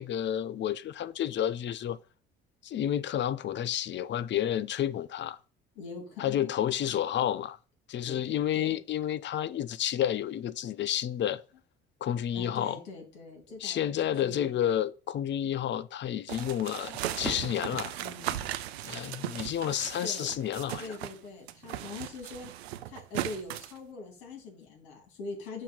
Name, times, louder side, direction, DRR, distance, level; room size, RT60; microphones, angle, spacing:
voice 1, 0.0-2.0 2.6-5.4 6.2-7.6 7.9-11.4 12.0-12.8 13.6-18.0 18.8-21.0, left 10 dB, 40° left, 0.5 m, -30 dB
voice 2, 5.7-6.5 8.0-8.8 12.3-14.5 18.0-18.5 20.0-20.3 20.8-22.5 22.9-25.6, left 3 dB, 75° left, 2.4 m, -43 dB
sound 1, 10.5-12.3 12.6-14.0 14.4-15.3 15.6-16.5 16.8-18.3 18.9-19.9, equal, ahead, 1.5 m, -50 dB
sound 2, 16.3-21.2 21.5-23.8, right 13 dB, 85° right, 0.5 m, -37 dB
6.4 x 2.9 x 5.4 m
hypercardioid pair, 55°, 30 cm